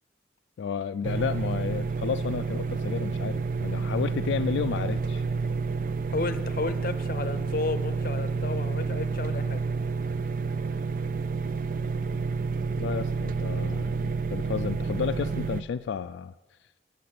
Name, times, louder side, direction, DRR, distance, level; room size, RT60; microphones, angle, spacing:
voice 1, 0.6-5.2 12.7-16.3, left 7 dB, 80° left, 10 dB, 0.3 m, -32 dB
sound 1, 1.0-15.6, right 4 dB, 50° right, 0.4 m, -29 dB
voice 2, 6.1-9.6, left 3 dB, 50° left, 11 dB, 0.6 m, -32 dB
8.6 x 8.6 x 8.1 m, 1.1 s
head